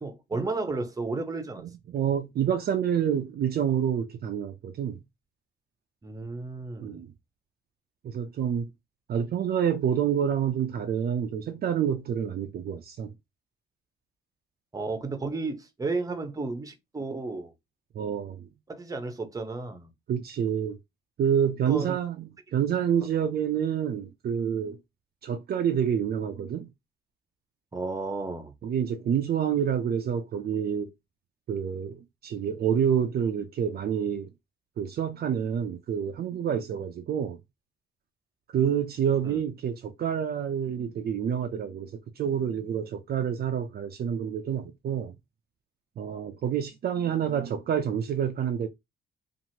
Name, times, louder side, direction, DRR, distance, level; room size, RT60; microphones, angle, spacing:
voice 1, 0.0-1.6 6.0-7.1 14.7-17.5 18.7-19.9 21.7-22.0 27.7-28.5 39.2-39.4, right 3 dB, 15° right, 0.7 m, -33 dB
voice 2, 1.9-5.0 6.8-7.1 8.0-8.7 9.1-13.1 18.0-18.5 20.1-20.8 21.2-24.8 25.2-26.7 28.6-30.9 31.5-34.3 34.8-37.4 38.5-41.9 42.2-45.1 46.0-48.7, right 8 dB, 50° right, 0.4 m, -28 dB
2.9 x 2.5 x 2.7 m
cardioid pair, 90°, 20 cm